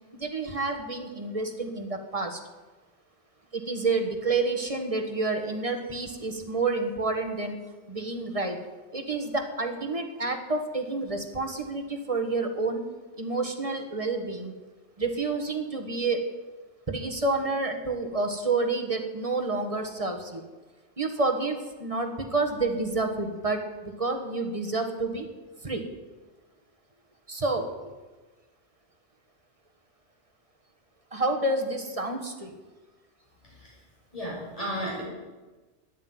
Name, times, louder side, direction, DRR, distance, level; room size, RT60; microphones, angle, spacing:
voice 1, 0.1-2.4 3.5-7.5 7.9-8.6 8.9-12.8 13.2-14.5 15.0-16.3 16.9-20.4 21.0-25.3 25.6-25.8 27.3-27.9 31.1-32.5, right 3 dB, 30° right, 5 dB, 1.6 m, -29 dB
voice 2, 33.4-33.7 34.1-35.1, equal, 30° left, -5 dB, 6.1 m, -34 dB
10.0 x 9.7 x 9.6 m, 1.2 s
omnidirectional pair, 1.3 m